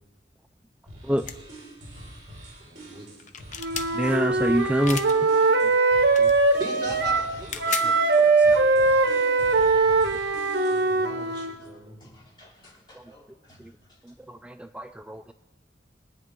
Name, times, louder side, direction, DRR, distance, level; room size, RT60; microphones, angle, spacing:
sound 1, 0.9-11.0, right 1 dB, 45° right, 4.5 m, -45 dB
sound 2, 1.3-1.4 3.2-3.9 4.8-5.1 6.1-6.3 7.3-7.9, left 7 dB, 45° left, 0.7 m, -33 dB
voice 1, 2.6-3.1 6.6-8.2 8.6-9.0 10.7-12.0, right 1 dB, 25° right, -6 dB, 4.6 m, -40 dB
Wind instrument woodwind instrument, 3.6-7.3 7.6-11.6, right 3 dB, 70° right, 1.2 m, -21 dB
voice 2, 3.9-5.0 5.6-5.7 6.2-6.3 7.8-8.7 12.9-13.0 13.6-13.7 14.0-15.3, right 1 dB, 5° right, 8 dB, 0.3 m, -28 dB
voice 3, 12.0-13.7, left 1 dB, 25° left, -4 dB, 3.0 m, -54 dB
22.5 x 9.4 x 3.7 m, 1.1 s
head